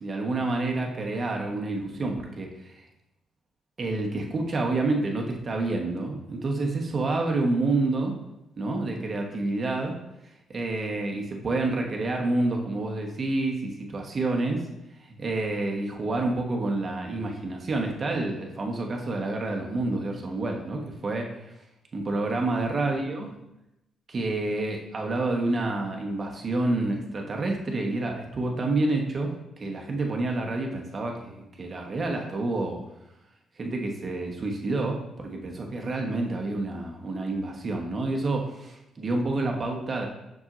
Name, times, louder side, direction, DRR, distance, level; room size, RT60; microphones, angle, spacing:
voice 1, 0.0-2.8 3.8-8.1 8.6-10.0 10.5-14.7 15.0-21.5 21.9-23.3 24.1-32.8 33.6-40.1, right 2 dB, 40° right, 1 dB, 1.2 m, -28 dB
7.1 x 6.1 x 2.6 m, 0.90 s
cardioid pair, 90°, 0 cm